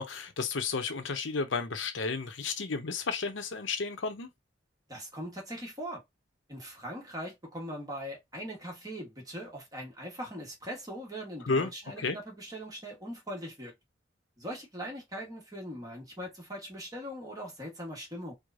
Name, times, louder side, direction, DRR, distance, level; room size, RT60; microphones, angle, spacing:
voice 1, 0.0-4.3 11.4-11.7 12.0-12.2, left 4 dB, 90° left, 0.7 m, -32 dB
voice 2, 4.9-6.0 6.5-13.7 14.4-18.3, equal, 20° right, 1.2 m, -41 dB
4.7 x 2.1 x 2.5 m
head